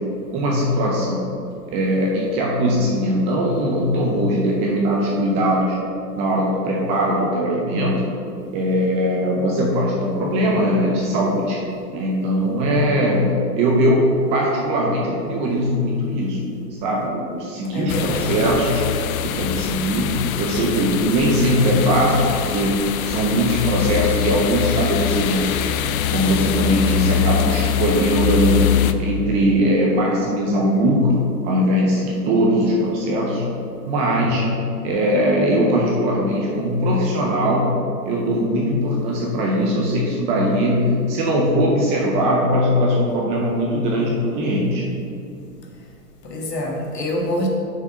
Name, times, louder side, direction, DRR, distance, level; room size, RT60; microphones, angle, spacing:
voice 1, 0.3-1.3 1.7-5.8 6.2-8.0 8.5-11.6 11.9-13.3 13.6-16.4 16.8-18.9 19.2-22.8 23.0-25.6 26.1-28.6 29.0-31.2 31.4-33.4 33.9-34.5 34.8-37.7 38.0-44.8, equal, 15° right, -2 dB, 0.4 m, -20 dB
voice 2, 17.7-18.3 46.2-47.5, left 1 dB, 85° left, 0 dB, 1.8 m, -25 dB
sound 1, 17.9-28.9, left 10 dB, 60° left, 0.6 m, -23 dB
6.6 x 5.0 x 5.5 m, 2.5 s
hypercardioid pair, 125°, 47 cm